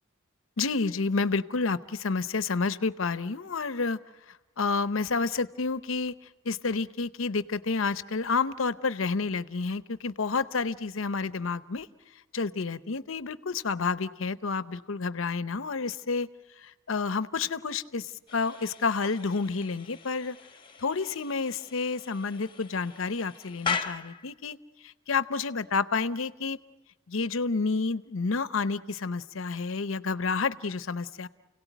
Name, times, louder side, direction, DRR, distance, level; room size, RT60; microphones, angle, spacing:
voice 1, 0.6-4.0 4.6-6.1 6.4-11.9 12.3-16.3 16.6-20.4 20.8-24.6 24.8-26.6 27.1-31.3, left 4 dB, 70° left, 15 dB, 0.8 m, -29 dB
sound 1, 18.3-24.4, left 5 dB, 25° left, 1.1 m, -39 dB
29.5 x 17.5 x 9.2 m, 1.1 s
head